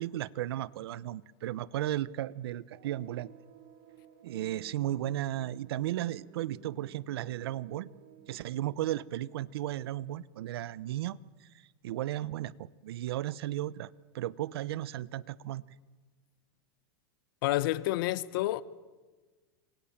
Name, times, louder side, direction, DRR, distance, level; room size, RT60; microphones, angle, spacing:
voice 1, 0.0-3.3 4.2-7.9 8.3-11.5 11.8-15.6, right 13 dB, 80° right, 0.8 m, -35 dB
sound 1, 2.7-9.9, right 9 dB, 50° right, 2.4 m, -55 dB
voice 2, 17.4-18.6, left 16 dB, 60° left, 1.0 m, -29 dB
28.5 x 24.5 x 7.3 m
supercardioid pair, 150°, 13 cm